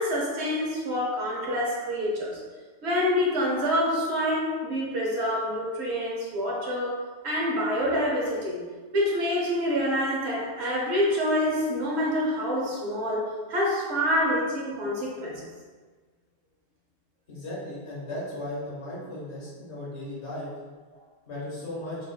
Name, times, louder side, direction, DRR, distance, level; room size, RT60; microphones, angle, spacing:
voice 1, 0.0-2.4 2.8-8.6 8.9-15.4, equal, 85° right, -4 dB, 1.2 m, -27 dB
voice 2, 17.3-20.5 21.3-22.0, left 1 dB, 90° left, -6 dB, 1.6 m, -36 dB
5.9 x 2.4 x 2.3 m, 1.4 s
omnidirectional pair, 1.1 m